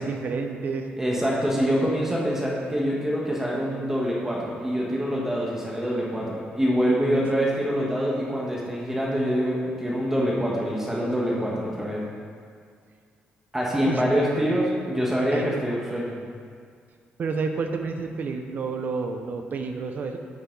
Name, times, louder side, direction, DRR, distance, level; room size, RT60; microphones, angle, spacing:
voice 1, 0.0-0.9 13.8-14.2 15.3-15.7 17.2-20.2, right 4 dB, 50° right, 5 dB, 0.9 m, -30 dB
voice 2, 1.0-12.0 13.5-16.2, equal, 10° right, -4 dB, 1.5 m, -25 dB
10.0 x 9.2 x 4.0 m, 2.1 s
cardioid pair, 135°, 4 cm